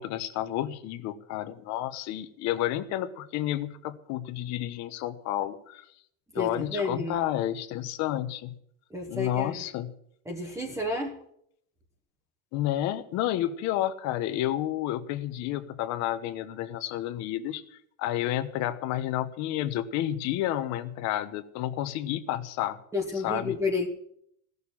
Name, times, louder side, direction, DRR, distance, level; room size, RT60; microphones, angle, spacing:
voice 1, 0.0-5.9 6.3-8.5 9.1-9.9 12.5-22.8 23.2-23.6, left 13 dB, 45° left, 11 dB, 1.1 m, -30 dB
voice 2, 6.3-7.2 8.9-9.6 10.3-11.2 22.9-23.9, left 3 dB, 10° right, 1 dB, 1.3 m, -31 dB
17.0 x 6.7 x 9.9 m, 0.70 s
cardioid pair, 180°, 37 cm